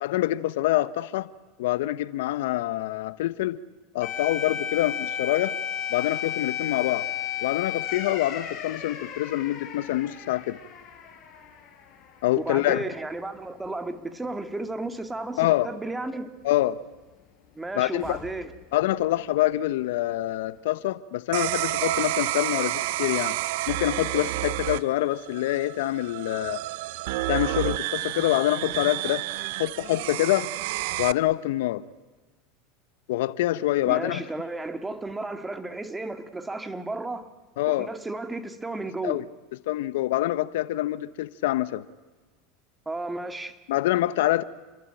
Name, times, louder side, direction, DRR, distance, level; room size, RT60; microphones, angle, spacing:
voice 1, 0.0-1.3 1.6-3.6 3.9-5.5 5.9-7.1 7.4-10.6 12.2-12.8 15.4-15.7 16.4-16.8 17.7-18.2 18.7-23.4 23.7-26.6 27.3-29.2 29.6-30.5 31.0-31.8 33.1-34.2 37.6-37.9 39.0-39.2 39.7-41.8 43.7-44.4, left 15 dB, 75° left, 1.0 m, -25 dB
sound 1, 4.0-12.7 13.0-13.1 18.0-18.6, left 9 dB, 45° left, 6.2 m, -34 dB
voice 2, 12.4-16.3 17.6-18.5 33.9-37.3 37.7-39.2 42.9-43.6, right 2 dB, 10° right, 2.4 m, -33 dB
sound 2, 21.3-31.1, right 18 dB, 70° right, 0.8 m, -30 dB
29.5 x 21.5 x 9.2 m
hypercardioid pair, 105°, 0 cm